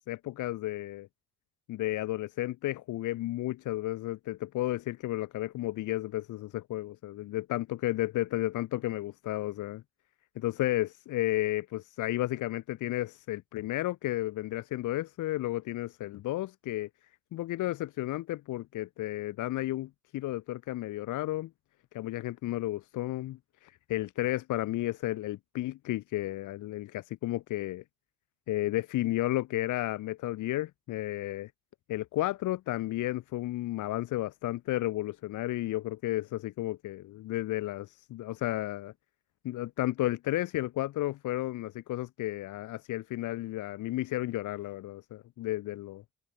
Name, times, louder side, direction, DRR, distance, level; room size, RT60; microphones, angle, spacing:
voice 1, 0.1-1.1 1.7-9.8 10.3-16.9 17.3-21.5 21.9-27.8 28.5-31.5 31.9-38.9 39.4-46.0, left 16 dB, 80° left, 1.1 m, -33 dB
cardioid pair, 90°, 30 cm